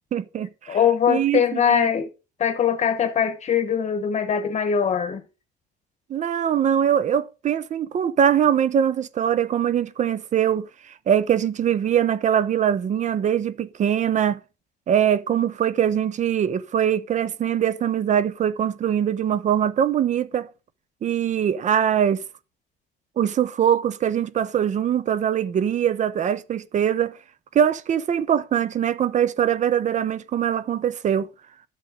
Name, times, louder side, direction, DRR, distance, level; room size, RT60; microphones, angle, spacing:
voice 1, 0.1-0.8 1.1-1.9 6.1-14.4 14.9-20.5 21.0-22.2 23.2-27.2 27.5-31.3, right 9 dB, 45° right, 0.7 m, -22 dB
voice 2, 0.7-2.1 2.4-5.2, left 8 dB, 40° left, 1.1 m, -22 dB
9.8 x 7.5 x 5.2 m
cardioid pair, 110°, 17 cm